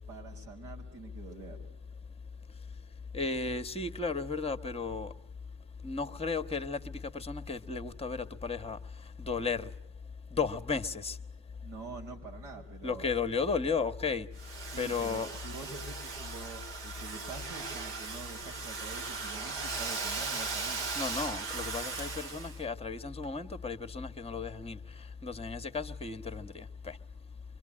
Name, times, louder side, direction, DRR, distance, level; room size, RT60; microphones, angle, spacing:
voice 1, 0.1-1.7 11.6-13.1 14.7-20.9, right 3 dB, 85° right, 5.3 m, -46 dB
voice 2, 3.1-5.1 5.8-8.8 9.2-9.7 10.3-11.2 12.8-14.3 14.8-15.3 20.9-24.8 25.2-27.0, left 4 dB, 15° left, 1.4 m, -34 dB
Domestic sounds home sounds, 14.4-22.6, right 4 dB, 70° right, 2.5 m, -38 dB
25.5 x 23.0 x 8.7 m
supercardioid pair, 80°, 45 cm